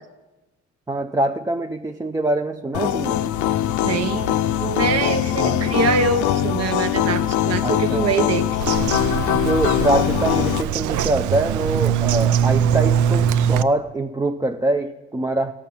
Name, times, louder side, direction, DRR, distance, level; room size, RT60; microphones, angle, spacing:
voice 1, 0.9-3.3 5.4-5.8 7.6-8.1 9.4-15.5, right 2 dB, 10° right, 6 dB, 0.4 m, -24 dB
sound 1, 2.7-10.6, left 11 dB, 80° left, 0.5 m, -22 dB
voice 2, 3.8-8.6, right 5 dB, 55° right, 11 dB, 1.0 m, -24 dB
Bird vocalization bird call bird song, 8.6-13.6, right 8 dB, 75° right, 0.5 m, -21 dB
13.0 x 5.9 x 8.7 m, 1.1 s
cardioid pair, 90°, 30 cm